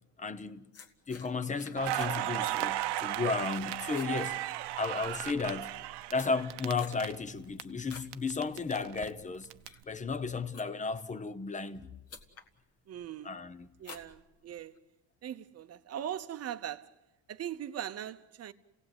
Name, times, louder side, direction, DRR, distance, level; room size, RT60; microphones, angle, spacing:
voice 1, 0.2-0.6 1.1-4.4 4.8-5.7 6.1-9.5 9.9-11.9 13.2-13.7, left 4 dB, 20° left, 0.8 m, -34 dB
sound 1, 0.7-2.2 2.5-2.9 3.2-3.6 3.8-5.0 5.6-8.2 8.5-8.9 9.4-11.0 11.7-11.8 12.1-12.5 13.0-13.4 13.8-14.8, left 5 dB, 35° left, 1.7 m, -51 dB
Crackle, 1.8-7.6 7.9-9.7, right 14 dB, 80° right, 0.9 m, -35 dB
voice 2, 12.9-13.3 13.8-14.8 15.2-16.9 17.3-18.5, right 10 dB, 40° right, 0.9 m, -40 dB
30.0 x 17.5 x 8.0 m
cardioid pair, 160°, 40 cm